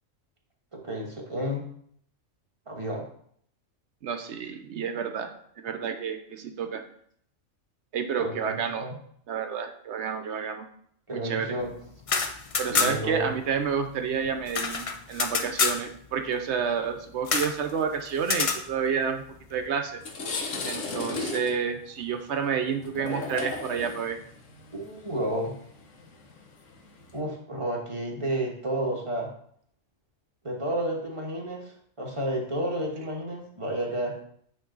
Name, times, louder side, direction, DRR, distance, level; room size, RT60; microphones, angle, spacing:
voice 1, 0.7-1.6 2.7-3.1 8.2-9.0 11.1-11.7 12.7-13.3 24.7-25.6 27.1-29.3 30.4-34.3, right 1 dB, 25° right, -1 dB, 1.2 m, -31 dB
voice 2, 4.0-5.3 5.6-6.8 7.9-8.9 9.3-10.7 11.1-11.6 12.6-19.2 19.5-20.0 20.6-24.2, right 6 dB, 70° right, 6 dB, 0.9 m, -30 dB
sound 1, 11.9-13.2 13.5-13.6 13.8-15.8 17.3-17.6 18.2-18.6, left 5 dB, 60° left, 0.3 m, -27 dB
sound 2, 19.4-19.5 19.9-27.2, left 3 dB, 80° left, 1.3 m, -36 dB
8.7 x 3.0 x 3.9 m, 0.64 s
omnidirectional pair, 1.3 m